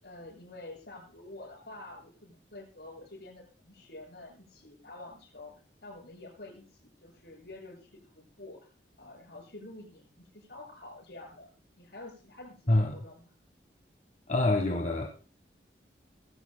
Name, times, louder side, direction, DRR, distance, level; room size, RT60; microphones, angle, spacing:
voice 1, 0.0-5.5 5.8-8.6 9.0-11.5 11.8-13.2, left 2 dB, 75° left, 6.6 m, -48 dB
voice 2, 14.3-15.1, left 2 dB, 45° left, 1.3 m, -26 dB
20.0 x 16.0 x 2.2 m
head